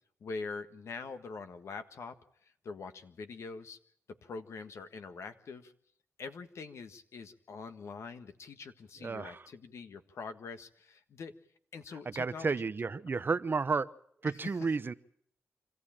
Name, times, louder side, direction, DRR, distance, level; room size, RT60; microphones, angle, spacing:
voice 1, 0.2-2.2 2.6-3.8 4.1-5.7 6.2-11.3 11.7-12.5 14.2-14.6, left 4 dB, 75° left, 8 dB, 1.6 m, -44 dB
voice 2, 9.0-9.4 12.2-13.9 14.2-14.9, right 4 dB, 45° right, 14 dB, 0.9 m, -32 dB
26.0 x 15.0 x 8.9 m, 0.67 s
cardioid pair, 60°, 5 cm